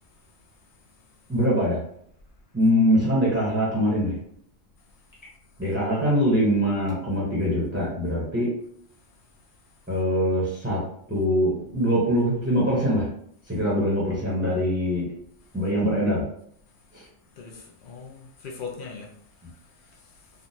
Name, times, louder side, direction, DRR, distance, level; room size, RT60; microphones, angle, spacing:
voice 1, 1.3-1.8 2.5-4.1 5.6-8.5 9.9-10.8 11.1-13.1 13.5-15.1 15.5-16.2 16.9-17.0, equal, 10° right, -6 dB, 0.8 m, -23 dB
voice 2, 17.4-19.1 19.4-20.3, left 5 dB, 55° left, -1 dB, 0.6 m, -41 dB
3.6 x 2.3 x 2.7 m, 0.69 s
omnidirectional pair, 1.3 m